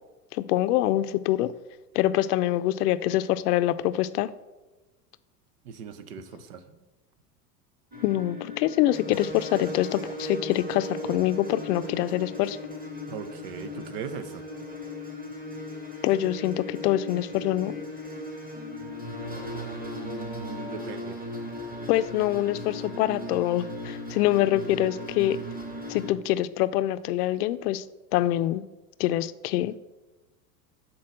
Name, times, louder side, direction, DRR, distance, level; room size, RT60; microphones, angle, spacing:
voice 1, 0.3-1.5 1.9-4.3 8.0-12.6 16.0-17.7 21.9-25.4 25.9-27.8 28.1-28.6 29.0-29.8, left 14 dB, 70° left, 14 dB, 0.5 m, -25 dB
voice 2, 5.6-6.8 13.1-14.5 19.5-21.2, right 7 dB, 75° right, 11 dB, 0.8 m, -39 dB
sound 1, 7.9-26.1, left 1 dB, 20° right, 1.5 m, -37 dB
6.1 x 4.1 x 6.3 m, 1.1 s
hypercardioid pair, 90°, 48 cm